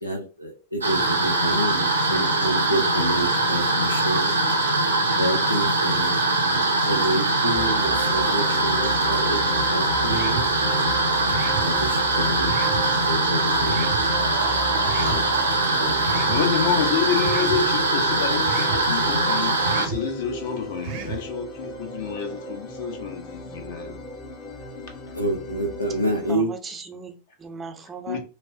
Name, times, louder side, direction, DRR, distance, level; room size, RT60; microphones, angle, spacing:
voice 1, 0.0-4.3 5.2-9.4 9.7-10.5 11.6-14.0 14.9-15.2 15.8-16.0 25.1-26.5, right 1 dB, 85° left, 0.8 m, -28 dB
sound 1, 0.8-19.9, right 2 dB, 80° right, 0.7 m, -22 dB
sound 2, 7.5-26.4, right 2 dB, 20° left, 0.9 m, -37 dB
sound 3, 10.1-10.5 11.3-11.7 12.5-12.8 13.7-14.0 14.8-15.2 16.0-16.4 17.2-17.6 18.4-18.8 19.6-20.0 20.8-21.2, right 9 dB, 45° right, 0.7 m, -33 dB
voice 2, 16.3-24.1 28.1-28.2, left 7 dB, 50° left, 1.1 m, -28 dB
voice 3, 26.3-28.2, right 5 dB, 20° right, 0.6 m, -38 dB
5.1 x 2.0 x 2.7 m
figure-of-eight pair, 90°, 0 cm